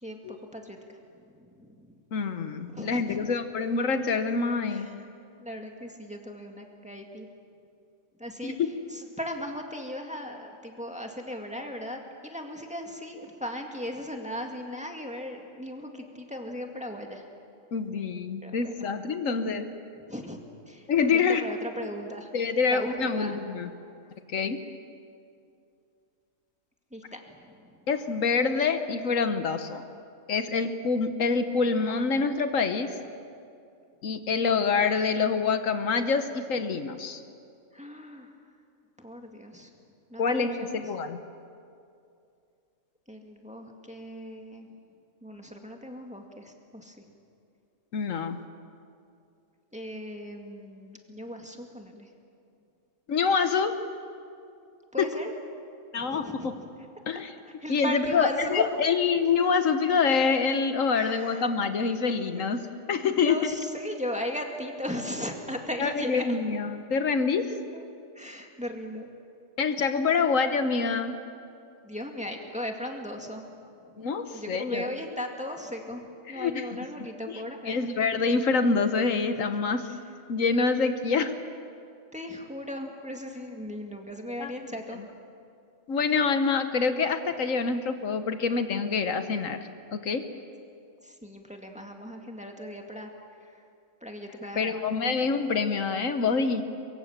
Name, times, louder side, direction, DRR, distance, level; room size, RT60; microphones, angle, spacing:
voice 1, 0.0-1.9 2.7-3.3 4.7-5.0 5.4-7.3 8.2-8.6 8.9-17.3 18.4-18.9 20.1-20.4 20.7-22.3 22.7-23.4 26.9-27.9 37.7-38.3 39.0-39.7 40.1-40.8 43.1-44.7 45.2-47.0 49.7-52.1 54.9-55.3 55.9-56.7 57.4-58.7 61.0-61.5 62.4-62.5 63.2-66.4 67.7-67.8 68.2-69.1 71.8-73.6 74.3-77.8 79.4-79.5 82.1-85.1 91.0-93.1 93.4-93.6 94.0-94.8 95.2-95.4, left 1 dB, 5° right, 2 dB, 2.1 m, -37 dB
voice 2, 2.1-4.9 8.4-8.7 17.7-19.7 20.9-21.5 22.3-23.7 24.3-24.6 27.9-29.8 30.3-32.9 34.0-37.2 40.2-41.2 47.9-48.4 53.1-53.8 55.0-55.1 55.9-56.5 57.1-57.3 57.7-62.6 62.9-63.5 65.8-67.5 69.6-71.2 74.0-74.9 76.3-76.7 77.7-79.9 80.3-81.3 84.4-84.5 85.9-89.6 89.9-90.3 94.5-96.6, left 5 dB, 75° left, 8 dB, 1.5 m, -26 dB
24.0 x 23.0 x 7.4 m, 2.5 s
omnidirectional pair, 1.4 m